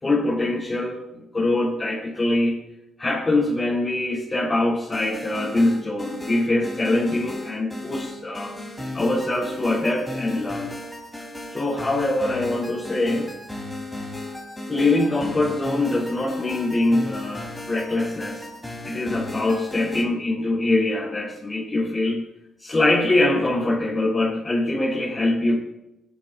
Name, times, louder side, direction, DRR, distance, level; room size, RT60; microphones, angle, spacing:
voice 1, 0.0-2.6 3.0-8.6 8.9-10.7 11.5-13.3 14.7-18.5 18.9-22.2 22.6-25.6, left 2 dB, 25° left, -7 dB, 3.9 m, -23 dB
sound 1, 4.9-20.0, left 2 dB, 5° left, 3.5 m, -35 dB
17.0 x 11.5 x 2.6 m, 0.90 s
cardioid pair, 90°, 0 cm